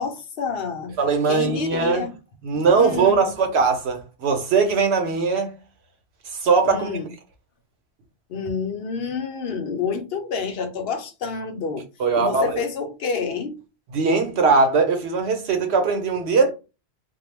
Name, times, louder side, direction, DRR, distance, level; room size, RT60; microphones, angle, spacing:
voice 1, 0.0-0.9 1.3-2.2 2.5-3.3 6.7-7.1 8.3-11.9 12.2-13.6, left 5 dB, 70° left, 0.8 m, -29 dB
voice 2, 1.0-2.0 2.4-5.5 6.4-6.9 12.0-12.6 13.9-16.5, right 4 dB, 85° right, 1.0 m, -20 dB
2.3 x 2.1 x 3.2 m
omnidirectional pair, 1.1 m